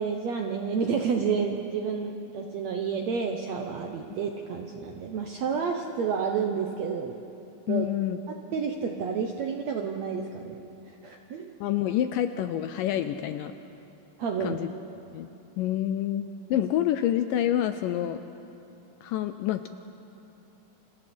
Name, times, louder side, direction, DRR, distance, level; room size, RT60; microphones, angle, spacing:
voice 1, 0.0-7.2 7.7-7.9 8.3-11.5 14.2-14.6, right 6 dB, 75° right, 3 dB, 1.6 m, -30 dB
voice 2, 7.7-8.2 11.6-13.5 14.4-14.7 15.1-15.3 15.6-18.2 19.0-19.7, left 11 dB, 80° left, 9 dB, 2.0 m, -27 dB
29.5 x 27.5 x 4.4 m, 2.8 s
omnidirectional pair, 4.4 m